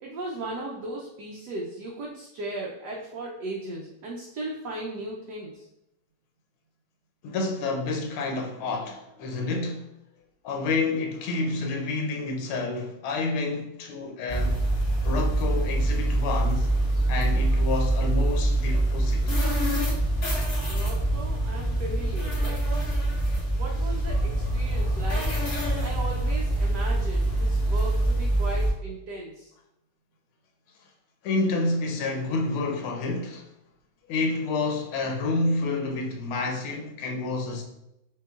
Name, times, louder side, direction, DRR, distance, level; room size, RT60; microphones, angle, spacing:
voice 1, 0.0-5.7 20.7-23.0 23.5-25.3 25.8-29.5, right 1 dB, 70° right, 1.0 m, -37 dB
voice 2, 7.2-9.9 10.4-14.6 15.0-16.7 17.1-19.3 31.2-33.4 34.1-37.6, left 3 dB, 85° left, 1.6 m, -29 dB
sound 1, 14.3-28.7, right 1 dB, 40° left, 1.5 m, -25 dB
5.9 x 2.9 x 2.4 m
omnidirectional pair, 2.3 m